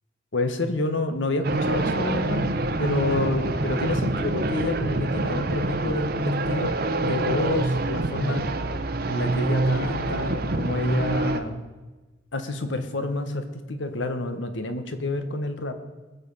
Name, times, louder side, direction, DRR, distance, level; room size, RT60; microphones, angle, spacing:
voice 1, 0.3-6.7 7.0-8.5 9.1-11.6 12.3-15.8, left 2 dB, 80° left, 8 dB, 1.3 m, -29 dB
sound 1, 1.4-11.4, right 2 dB, 55° right, 0.9 m, -26 dB
20.5 x 7.0 x 5.5 m, 1.2 s
head